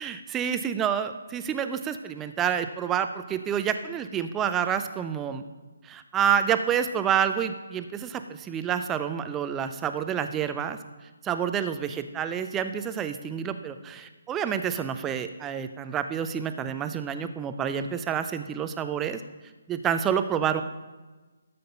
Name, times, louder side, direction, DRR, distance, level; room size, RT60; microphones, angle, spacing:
voice 1, 0.0-5.4 5.8-10.8 11.2-19.2 19.7-20.6, right 8 dB, 10° right, 9 dB, 0.5 m, -28 dB
13.0 x 6.7 x 5.4 m, 1.2 s
figure-of-eight pair, 140°, 0 cm